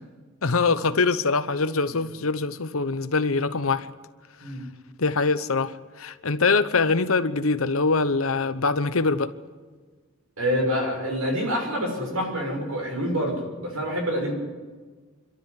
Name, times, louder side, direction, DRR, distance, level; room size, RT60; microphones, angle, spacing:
voice 1, 0.4-3.9 4.5-4.6 5.0-9.3, left 4 dB, 80° left, 1.0 m, -23 dB
voice 2, 10.4-14.3, equal, 75° right, 6.7 m, -27 dB
26.5 x 12.5 x 9.9 m
head